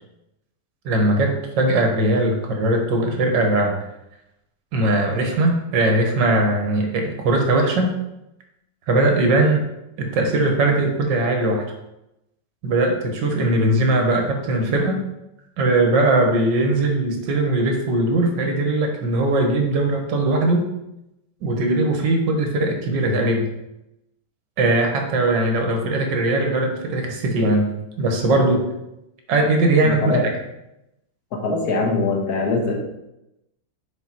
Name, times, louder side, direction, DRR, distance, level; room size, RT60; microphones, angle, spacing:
voice 1, 0.9-3.8 4.7-7.9 8.9-9.7 10.0-11.6 12.6-15.0 15.6-20.6 21.4-23.5 24.6-27.7 28.0-28.6 29.3-30.2, right 2 dB, 70° right, 3 dB, 1.8 m, -20 dB
voice 2, 29.8-30.2 31.4-32.8, left 3 dB, 60° left, 1 dB, 1.7 m, -22 dB
6.7 x 4.5 x 4.3 m, 0.88 s
omnidirectional pair, 2.0 m